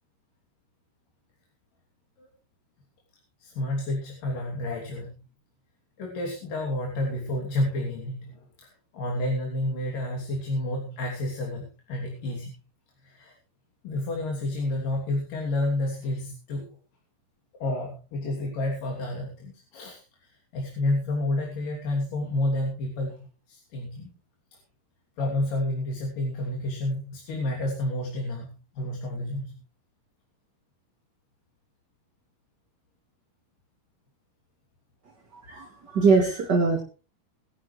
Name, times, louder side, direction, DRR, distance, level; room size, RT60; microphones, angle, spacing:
voice 1, 3.4-5.2 6.0-12.5 13.0-13.4 13.8-16.8 17.5-24.1 25.2-29.6, left 1 dB, 60° left, 0 dB, 4.4 m, -30 dB
voice 2, 35.3-36.8, right 4 dB, 30° right, 2 dB, 2.4 m, -22 dB
21.5 x 11.5 x 3.2 m, 0.35 s
omnidirectional pair, 4.5 m